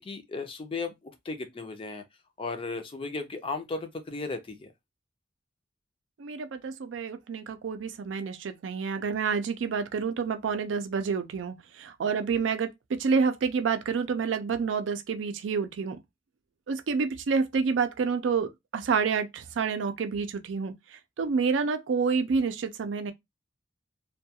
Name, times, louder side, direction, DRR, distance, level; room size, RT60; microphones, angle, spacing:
voice 1, 0.0-2.0 2.4-4.7, left 3 dB, 30° left, 0.4 m, -35 dB
voice 2, 6.2-16.0 16.7-23.1, right 5 dB, 85° right, 0.4 m, -28 dB
2.3 x 2.2 x 2.7 m
head